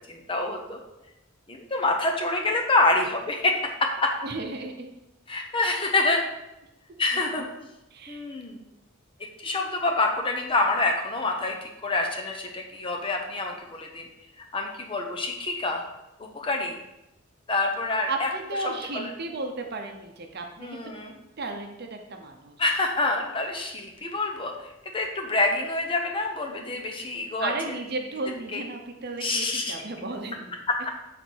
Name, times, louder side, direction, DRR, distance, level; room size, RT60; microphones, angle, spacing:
voice 1, 0.1-0.8 1.5-4.1 5.3-6.2 7.0-7.5 8.1-8.6 9.4-14.1 14.5-15.8 16.2-16.8 17.5-18.3 18.9-19.1 20.6-21.1 22.6-24.5 24.9-27.5 28.5-28.6 29.2-29.7 30.7-30.9, left 2 dB, 25° left, 2 dB, 0.7 m, -26 dB
voice 2, 4.2-5.0 7.9-8.2 18.1-20.8 21.1-22.6 27.4-30.5, right 3 dB, 50° right, 3 dB, 0.8 m, -34 dB
6.5 x 4.1 x 4.5 m, 0.91 s
head